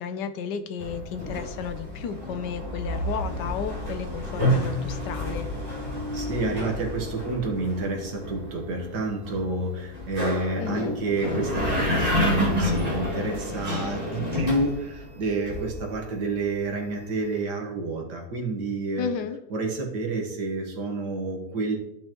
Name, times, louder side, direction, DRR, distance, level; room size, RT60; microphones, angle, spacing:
voice 1, 0.0-5.5 10.6-11.0 19.0-19.4, left 7 dB, 80° left, 10 dB, 1.3 m, -33 dB
sound 1, 0.8-16.3, left 1 dB, 20° right, 2.2 m, -29 dB
voice 2, 6.1-19.1 19.5-21.8, right 2 dB, 75° right, 1 dB, 2.0 m, -29 dB
12.0 x 5.6 x 3.0 m, 0.87 s
omnidirectional pair, 1.8 m